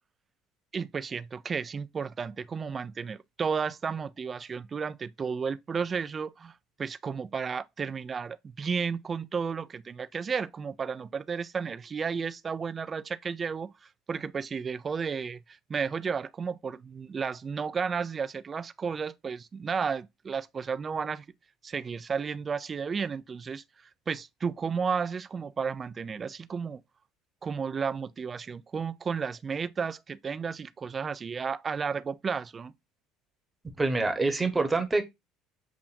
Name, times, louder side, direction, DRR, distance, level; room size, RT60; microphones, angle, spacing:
voice 1, 0.7-21.3 21.6-23.6 24.1-26.8 27.4-32.7, right 6 dB, 30° right, 0.3 m, -33 dB
voice 2, 33.8-35.0, right 3 dB, 15° right, 1.0 m, -26 dB
7.0 x 2.5 x 2.5 m
supercardioid pair, 105°, 0 cm